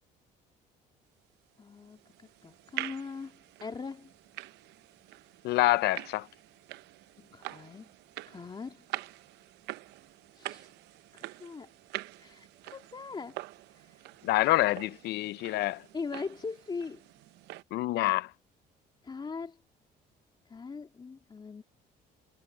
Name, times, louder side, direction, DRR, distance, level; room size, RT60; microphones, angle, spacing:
voice 1, 1.6-4.1 7.2-7.9 8.3-8.9 10.3-10.7 11.1-11.7 12.2-13.4 13.7-14.1 15.9-17.0 19.0-19.6 20.4-21.6, left 4 dB, 25° left, 3.1 m, -41 dB
sound 1, 1.6-17.6, right 17 dB, 85° right, 0.8 m, -45 dB
voice 2, 5.4-6.3 14.2-15.8 17.7-18.3, left 17 dB, 75° left, 0.6 m, -27 dB
cardioid pair, 110°, 17 cm